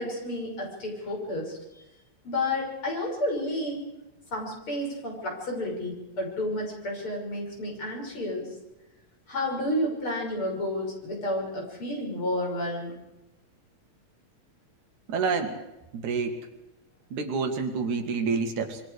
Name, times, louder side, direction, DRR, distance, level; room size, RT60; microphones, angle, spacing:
voice 1, 0.0-1.6 2.2-3.8 4.3-8.5 9.3-12.9, left 1 dB, 45° left, 0 dB, 7.0 m, -31 dB
voice 2, 15.1-15.6 15.9-16.4 17.1-18.8, right 5 dB, 80° right, 6 dB, 3.5 m, -28 dB
27.0 x 23.5 x 4.9 m, 0.96 s
omnidirectional pair, 3.3 m